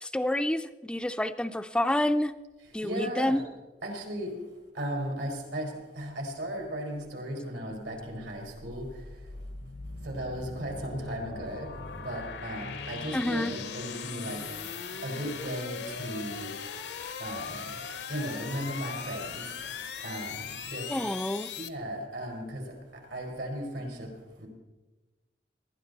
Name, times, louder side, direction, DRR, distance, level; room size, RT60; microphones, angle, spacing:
voice 1, 0.0-2.3 2.7-3.4 13.1-13.5 20.9-21.5, left 1 dB, 5° left, 10 dB, 0.3 m, -28 dB
voice 2, 2.8-3.4 3.8-4.3 4.7-8.9 10.0-11.7 12.0-14.6 15.0-16.5 17.2-17.8 18.1-19.4 20.0-20.9 21.6-22.6 23.1-24.1 24.4-24.5, equal, 90° right, 0 dB, 4.3 m, -36 dB
sound 1, 7.9-21.7, left 6 dB, 75° left, 0.8 m, -40 dB
19.5 x 12.0 x 4.0 m, 1.2 s
head